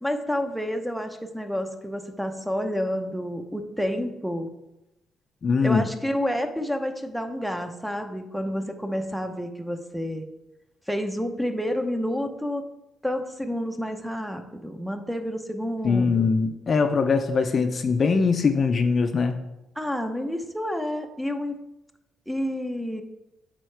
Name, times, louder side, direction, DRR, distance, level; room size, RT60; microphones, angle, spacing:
voice 1, 0.0-4.5 5.6-10.2 10.9-12.6 13.0-16.3 19.8-21.6 22.3-23.0, equal, ahead, 6 dB, 0.7 m, -29 dB
voice 2, 5.4-5.9 15.8-19.4, left 5 dB, 45° left, 7 dB, 0.4 m, -22 dB
8.7 x 3.7 x 3.3 m, 0.95 s
cardioid pair, 90°, 0 cm